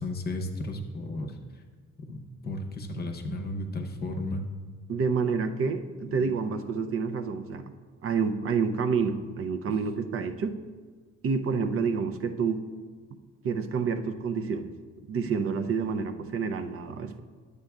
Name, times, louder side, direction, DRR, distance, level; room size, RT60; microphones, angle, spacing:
voice 1, 0.0-1.4 2.0-4.4 6.1-6.2, left 1 dB, 35° left, 5 dB, 0.8 m, -34 dB
voice 2, 4.9-7.7 8.0-10.6 11.2-12.6 13.4-14.7 15.1-17.2, right 5 dB, 50° right, 8 dB, 0.5 m, -28 dB
10.0 x 8.1 x 2.3 m, 1.5 s
cardioid pair, 135°, 29 cm